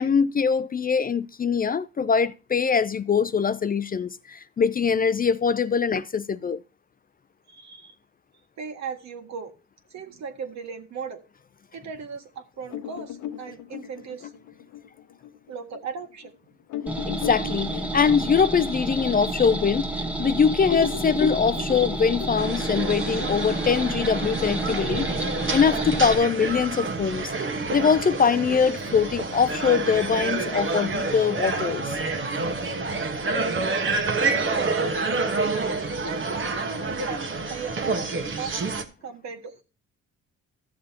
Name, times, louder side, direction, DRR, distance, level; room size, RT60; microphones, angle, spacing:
voice 1, 0.0-6.6 17.1-25.1 25.5-27.3 27.7-32.0, left 6 dB, 30° left, 0.4 m, -23 dB
voice 2, 7.5-7.9 8.6-9.5 9.9-11.2 11.7-14.3 15.5-16.3 34.5-35.7 36.0-39.6, right 5 dB, 65° right, 1.7 m, -37 dB
sound 1, 12.7-15.8 16.2-16.3 16.7-20.3 20.6-24.7, left 10 dB, 75° left, 0.8 m, -36 dB
sound 2, 16.9-26.2, right 2 dB, 5° right, 1.2 m, -30 dB
sound 3, 22.4-38.8, right 3 dB, 40° right, 1.3 m, -28 dB
13.5 x 7.3 x 2.8 m
cardioid pair, 90°, 30 cm